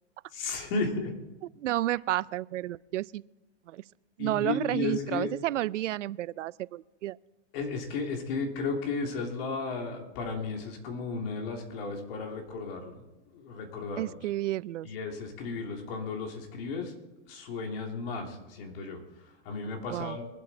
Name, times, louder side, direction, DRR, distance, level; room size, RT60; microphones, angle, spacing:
voice 1, 0.3-1.1 4.2-5.3 7.5-14.3 14.8-16.9 17.2-20.3, left 4 dB, 50° left, 3.1 m, -34 dB
voice 2, 1.6-3.2 3.7-3.8 4.2-7.2 14.0-14.9 19.9-20.2, right 14 dB, 90° right, 0.5 m, -31 dB
24.0 x 8.2 x 4.3 m
hypercardioid pair, 140°, 36 cm